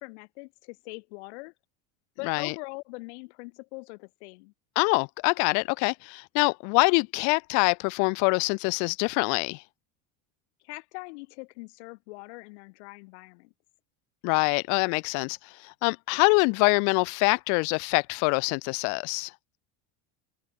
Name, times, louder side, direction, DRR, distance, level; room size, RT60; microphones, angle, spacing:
voice 1, 0.0-1.5 2.2-4.5 10.6-13.5, left 28 dB, 80° left, 5.3 m, -42 dB
voice 2, 2.2-2.5 4.8-9.6 14.2-19.3, left 36 dB, 60° left, 2.0 m, -25 dB
open air
cardioid pair, 180°, 33 cm